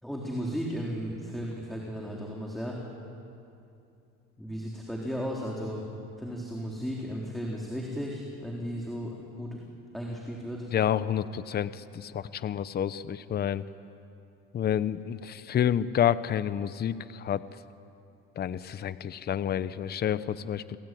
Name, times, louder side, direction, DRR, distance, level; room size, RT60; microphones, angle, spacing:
voice 1, 0.0-2.8 4.4-5.9 6.2-9.6 9.9-10.7, equal, ahead, -2 dB, 3.9 m, -35 dB
voice 2, 10.7-13.6 14.5-17.4 18.4-20.8, left 9 dB, 35° left, 14 dB, 0.8 m, -29 dB
29.5 x 20.5 x 9.3 m, 2.7 s
cardioid pair, 120°, 30 cm